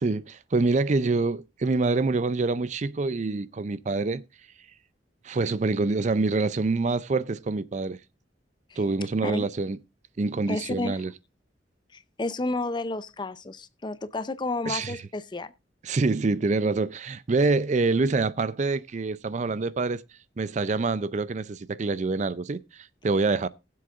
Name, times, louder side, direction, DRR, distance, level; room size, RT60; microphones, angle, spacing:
voice 1, 0.0-4.2 5.2-8.0 8.8-9.8 10.2-11.1 14.7-15.0 15.8-20.0 20.4-23.5, right 3 dB, 40° right, 0.4 m, -26 dB
voice 2, 10.5-11.0 11.9-15.5, left 2 dB, 25° left, 0.5 m, -31 dB
20.0 x 7.6 x 2.5 m
head